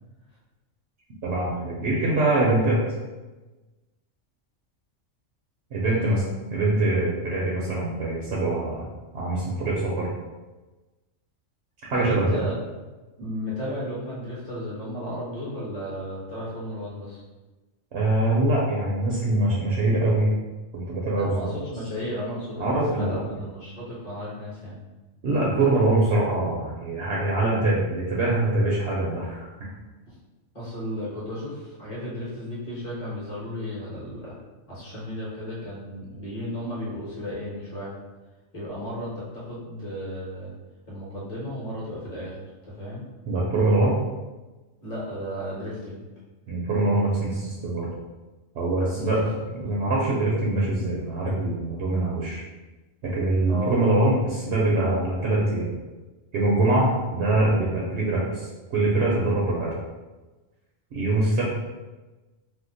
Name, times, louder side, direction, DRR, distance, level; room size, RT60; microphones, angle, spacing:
voice 1, 1.2-2.8 5.7-6.2 6.5-8.9 9.1-10.1 11.9-12.4 17.9-20.3 20.9-21.5 22.6-23.2 25.2-29.7 43.3-44.0 46.5-47.9 48.5-49.2 49.5-52.4 53.0-55.7 56.3-59.7 60.9-61.4, right 2 dB, 65° right, -4 dB, 0.8 m, -23 dB
voice 2, 5.8-6.2 12.0-12.5 13.2-17.2 21.2-24.8 30.0-30.2 30.5-34.4 34.7-38.0 38.5-40.5 40.9-42.4 42.6-43.0 44.8-46.0 48.9-49.1 49.5-49.7 53.5-53.9, left 1 dB, 30° left, -7 dB, 1.1 m, -34 dB
2.7 x 2.0 x 3.8 m, 1.2 s
omnidirectional pair, 1.3 m